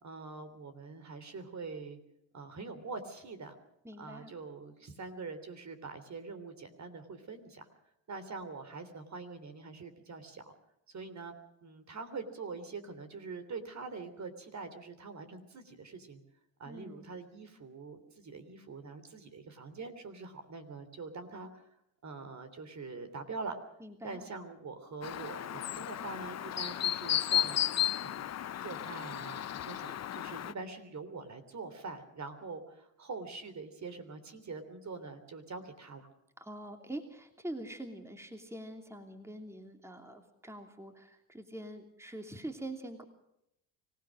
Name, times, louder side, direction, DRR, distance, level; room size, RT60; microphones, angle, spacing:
voice 1, 0.0-2.0 2.3-3.6 4.0-7.6 8.1-10.5 10.9-16.2 16.6-21.7 22.0-23.6 24.0-27.6 28.0-28.3 28.6-36.1, right 4 dB, 40° right, 9 dB, 3.4 m, -44 dB
voice 2, 3.8-4.3 16.6-17.1 23.8-24.3 36.4-43.0, right 1 dB, 5° right, 5 dB, 2.9 m, -44 dB
Chirp tweet, 25.0-30.5, left 11 dB, 35° left, 0.7 m, -34 dB
25.0 x 17.0 x 6.3 m, 0.79 s
hypercardioid pair, 65°, 44 cm